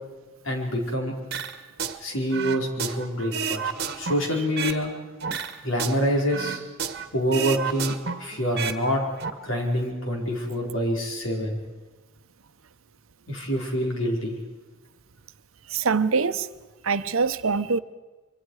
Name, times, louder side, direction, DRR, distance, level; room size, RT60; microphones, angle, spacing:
voice 1, 0.4-1.1 2.0-4.9 5.6-6.6 7.1-9.0 9.4-11.6 13.3-14.4, equal, 70° left, 4.6 m, -26 dB
sound 1, 1.3-2.0 2.3-4.8 5.2-7.1 7.3-8.8 9.1-9.3, right 6 dB, 55° right, 1.4 m, -31 dB
voice 2, 15.7-16.5 16.8-17.8, right 5 dB, 90° right, 0.8 m, -23 dB
25.5 x 24.0 x 4.8 m
head